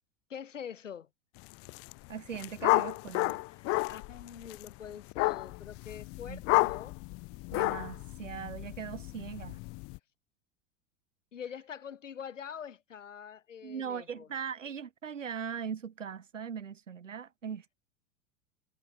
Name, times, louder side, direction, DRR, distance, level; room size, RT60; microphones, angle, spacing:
voice 1, 0.3-1.1 3.5-7.0 11.3-14.3, left 8 dB, 75° left, 4.1 m, -45 dB
sound 1, 1.5-1.9 2.2-10.0, left 26 dB, 40° left, 0.7 m, -32 dB
voice 2, 2.1-3.4 6.3-6.7 7.5-9.6 13.6-17.8, right 7 dB, 80° right, 6.9 m, -40 dB
figure-of-eight pair, 90°, 37 cm